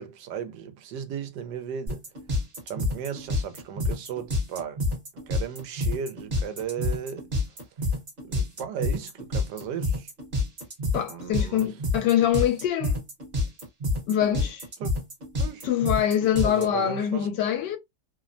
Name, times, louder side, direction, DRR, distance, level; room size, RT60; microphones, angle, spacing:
voice 1, 0.0-2.0 2.7-4.8 5.1-7.3 8.2-10.1 11.1-11.8 14.8-14.9 15.4-15.7 16.3-17.3, right 8 dB, 80° right, 1.2 m, -36 dB
sound 1, 1.9-16.7, left 2 dB, 40° right, 0.9 m, -28 dB
voice 2, 10.9-13.0 14.1-14.6 15.7-17.8, left 10 dB, 80° left, 1.3 m, -24 dB
3.2 x 2.0 x 2.4 m
omnidirectional pair, 1.8 m